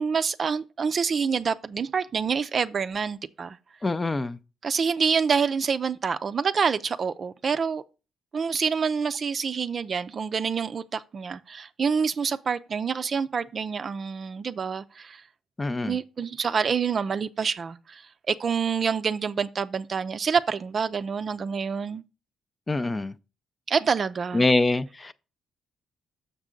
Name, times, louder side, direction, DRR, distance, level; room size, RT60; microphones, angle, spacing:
voice 1, 0.0-3.6 4.6-7.8 8.3-15.2 15.8-22.0 23.7-24.4, right 6 dB, 45° right, 0.4 m, -27 dB
voice 2, 3.8-4.4 15.6-16.0 22.7-23.1 24.3-25.1, left 2 dB, 25° left, 0.5 m, -24 dB
6.6 x 6.1 x 3.8 m
cardioid pair, 90°, 0 cm